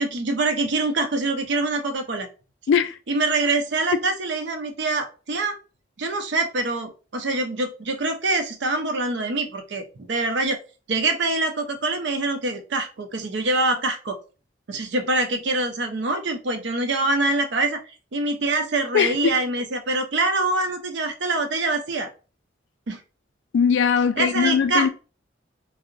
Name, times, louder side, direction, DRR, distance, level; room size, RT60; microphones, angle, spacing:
voice 1, 0.0-2.3 3.1-5.6 6.0-10.6 10.9-14.2 14.7-17.8 18.1-22.1 22.9-23.0 24.2-24.9, right 2 dB, 70° right, 0.5 m, -24 dB
voice 2, 2.7-3.0 18.9-19.4 23.5-24.9, left 6 dB, 75° left, 0.3 m, -20 dB
3.6 x 2.0 x 2.5 m
head